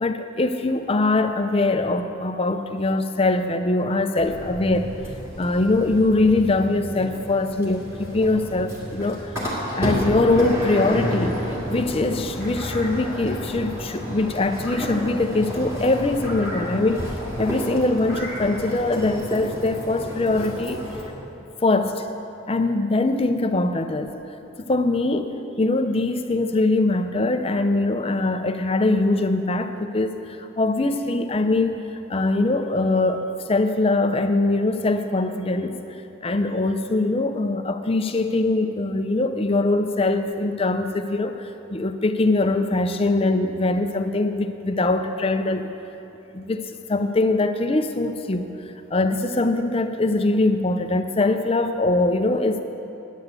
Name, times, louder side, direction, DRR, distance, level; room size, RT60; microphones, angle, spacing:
voice 1, 0.0-4.9 5.4-9.3 9.7-11.4 11.7-17.0 17.4-20.8 21.6-22.1 22.5-24.1 24.7-31.8 32.1-33.2 33.5-35.8 36.2-45.7 46.3-48.5 48.9-52.6, left 2 dB, 25° left, 7 dB, 0.5 m, -22 dB
sound 1, 4.2-21.0, equal, 15° right, 2.5 m, -31 dB
10.0 x 8.7 x 8.0 m, 3.0 s
head